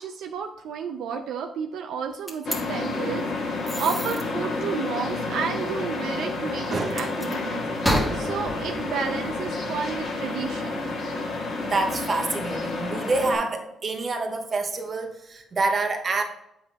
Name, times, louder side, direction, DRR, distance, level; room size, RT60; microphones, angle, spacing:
voice 1, 0.0-7.6 8.1-11.2, right 6 dB, 80° right, 4 dB, 0.4 m, -32 dB
sound 1, 2.3-2.6 3.7-4.2 6.9-7.4 7.8-10.1, equal, 5° left, 1.3 m, -30 dB
sound 2, 2.4-13.4, left 3 dB, 65° left, 1.5 m, -30 dB
voice 2, 6.7-7.1 11.6-16.2, right 3 dB, 40° right, 3 dB, 1.0 m, -27 dB
7.6 x 5.6 x 2.3 m, 0.83 s
cardioid pair, 90°, 0 cm